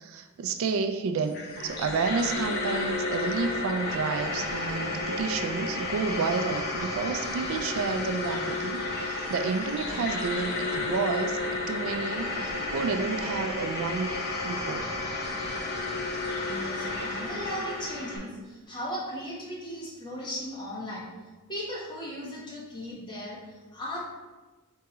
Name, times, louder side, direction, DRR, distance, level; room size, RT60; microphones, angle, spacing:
voice 1, 0.0-1.4 1.6-11.4 11.7-14.2 14.4-14.9, right 5 dB, 65° right, 8 dB, 0.3 m, -30 dB
sound 1, 1.2-18.2, left 2 dB, 45° left, 0.7 m, -32 dB
voice 2, 16.4-21.1 21.5-23.4 23.7-24.1, equal, 20° left, -5 dB, 1.1 m, -37 dB
4.6 x 3.5 x 3.0 m, 1.2 s
head